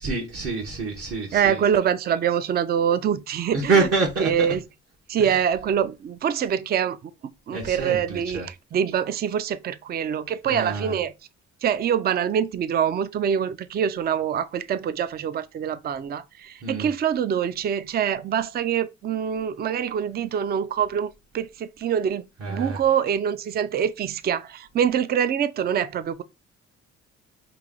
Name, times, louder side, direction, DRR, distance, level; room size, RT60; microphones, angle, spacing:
voice 1, 0.0-1.6 3.5-4.5 5.3-5.4 7.5-8.5 10.4-11.0 16.6-16.9 22.4-22.8, right 4 dB, 50° right, 1.2 m, -26 dB
voice 2, 1.3-3.9 4.2-4.6 5.1-11.1 11.6-26.2, right 8 dB, 35° right, 0.4 m, -25 dB
3.2 x 2.7 x 3.8 m
cardioid pair, 90°, 30 cm